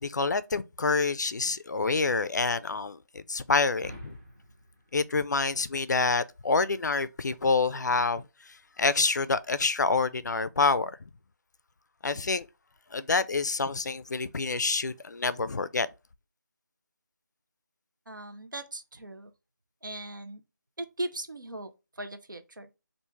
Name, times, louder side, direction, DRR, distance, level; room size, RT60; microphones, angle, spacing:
voice 1, 0.0-4.2 4.9-10.9 12.0-12.5 12.9-15.9, left 4 dB, 65° left, 0.4 m, -27 dB
sound 1, 3.7-6.2, equal, 20° right, 0.7 m, -48 dB
voice 2, 18.1-19.3 19.8-20.4 20.8-22.8, right 1 dB, 90° right, 0.7 m, -39 dB
3.0 x 2.5 x 3.5 m
figure-of-eight pair, 170°, 10 cm